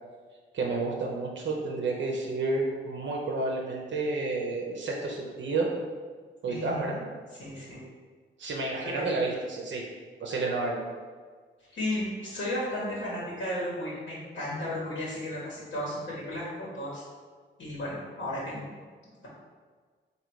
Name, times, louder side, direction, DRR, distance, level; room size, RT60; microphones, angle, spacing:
voice 1, 0.5-5.7 6.4-7.0 8.4-9.8 10.2-10.8, right 3 dB, 65° right, -2 dB, 0.8 m, -30 dB
voice 2, 6.5-6.9 7.3-7.8 8.8-9.1 11.7-17.0 17.6-18.7, left 1 dB, 65° left, -6 dB, 1.5 m, -34 dB
3.9 x 2.8 x 4.7 m, 1.6 s
cardioid pair, 80°, 20 cm